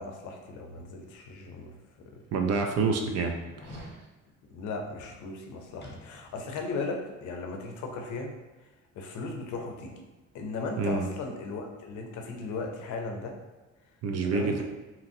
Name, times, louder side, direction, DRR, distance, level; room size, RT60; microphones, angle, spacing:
voice 1, 0.0-2.2 4.5-8.3 8.9-10.1 10.3-13.4 14.2-14.6, left 3 dB, 75° left, 2 dB, 0.6 m, -37 dB
sound 1, 1.5-1.6 2.2-2.3 3.4-4.0 5.8-6.5 6.8-6.9, equal, 35° left, 0.6 m, -46 dB
voice 2, 2.3-3.3 3.6-3.9 10.8-11.1 14.0-14.6, right 4 dB, 60° right, 4 dB, 0.5 m, -27 dB
2.9 x 2.5 x 2.6 m, 1.2 s
cardioid pair, 90°, 30 cm